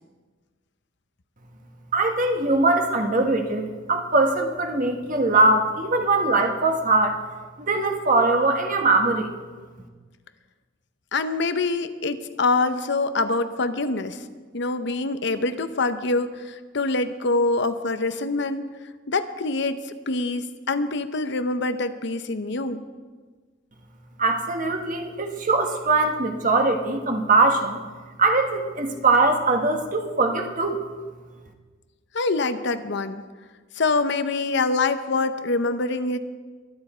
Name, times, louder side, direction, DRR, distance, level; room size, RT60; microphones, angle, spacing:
voice 1, 1.9-7.2 7.6-9.3 24.2-27.8 28.2-30.8, right 3 dB, 45° right, 4 dB, 1.5 m, -21 dB
voice 2, 11.1-14.2 14.5-18.7 19.1-22.8 32.1-33.2 33.8-36.2, left 3 dB, 60° left, 10 dB, 0.8 m, -25 dB
23.0 x 9.6 x 4.4 m, 1.4 s
head